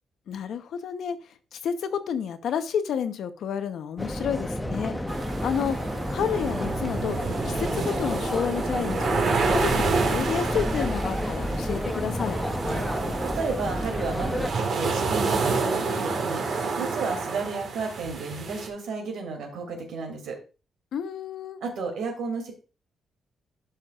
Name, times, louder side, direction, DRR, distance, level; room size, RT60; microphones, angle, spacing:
voice 1, 0.3-5.0 5.4-7.2 7.4-12.4 20.9-21.6, left 7 dB, 75° left, 9 dB, 0.9 m, -30 dB
sound 1, 4.0-14.5, equal, 5° left, 0.7 m, -30 dB
sound 2, 5.1-18.7, right 4 dB, 60° right, 1.7 m, -29 dB
voice 2, 13.2-20.4 21.6-22.5, right 4 dB, 85° right, 3 dB, 2.7 m, -33 dB
11.5 x 5.9 x 2.4 m, 0.33 s
cardioid pair, 145°, 0 cm